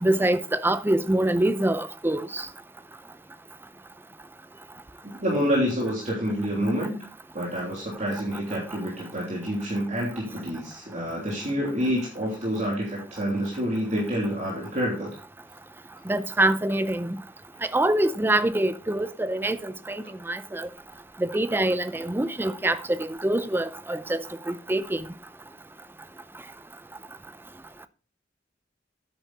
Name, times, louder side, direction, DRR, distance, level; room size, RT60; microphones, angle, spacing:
voice 1, 0.0-2.4 16.1-17.2 17.7-20.7 21.2-25.0, right 1 dB, 10° right, 0.6 m, -25 dB
voice 2, 5.2-7.0 7.3-15.1, equal, 40° right, 3.2 m, -28 dB
9.6 x 8.3 x 4.2 m
head